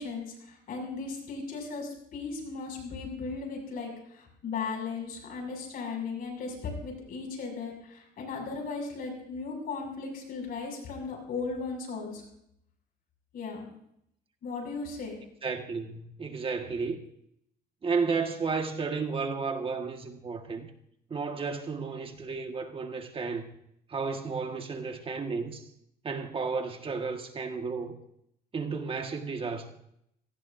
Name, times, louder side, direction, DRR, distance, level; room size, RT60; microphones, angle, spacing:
voice 1, 0.0-12.2 13.3-13.7 14.4-15.2, left 4 dB, 60° left, 1 dB, 6.7 m, -36 dB
voice 2, 15.4-17.0 17.8-20.7 21.1-23.4 23.9-25.6 26.0-28.0 28.5-29.7, right 4 dB, 30° right, 5 dB, 1.7 m, -32 dB
25.5 x 17.5 x 2.7 m, 0.74 s
cardioid pair, 110°, 17 cm